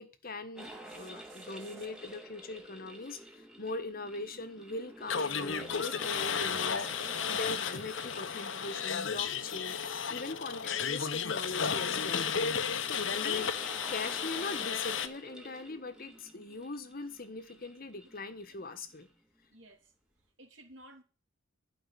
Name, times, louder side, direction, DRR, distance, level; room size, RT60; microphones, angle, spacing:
voice 1, 0.0-6.9 7.3-9.8 10.1-12.3 13.2-19.1, left 2 dB, 45° left, 1.3 m, -41 dB
sound 1, 0.6-19.2, right 1 dB, 5° right, 2.0 m, -50 dB
voice 2, 0.9-1.9 5.6-6.0 12.8-13.3 13.9-14.0 18.5-18.6 19.5-19.9 20.4-21.0, right 3 dB, 65° right, 2.8 m, -57 dB
sound 2, 5.1-15.1, left 6 dB, 65° left, 0.9 m, -33 dB
12.0 x 5.4 x 8.4 m
head